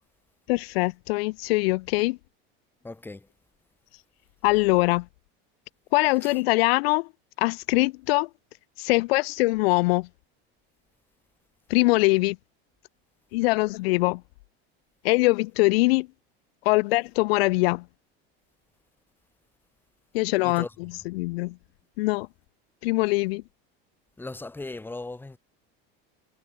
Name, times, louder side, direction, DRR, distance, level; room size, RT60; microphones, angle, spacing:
voice 1, 0.5-2.2 4.4-5.1 5.9-7.1 7.4-8.3 8.8-10.1 11.7-12.4 13.3-14.2 15.0-16.1 16.7-17.8 20.1-21.6 22.0-22.3 22.8-23.4, left 23 dB, 90° left, 0.5 m, -23 dB
voice 2, 2.8-3.3 6.2-6.4 20.4-20.7 24.2-25.4, left 2 dB, 5° left, 4.9 m, -37 dB
supercardioid pair, 155°, 29 cm